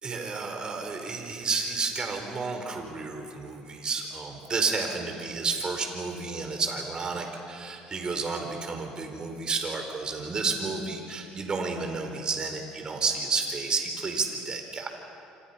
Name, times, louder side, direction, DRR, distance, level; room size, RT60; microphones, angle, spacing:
voice 1, 0.0-14.9, right 4 dB, 35° right, 4 dB, 4.5 m, -31 dB
27.0 x 26.5 x 5.8 m, 2.6 s
supercardioid pair, 95°, 3 cm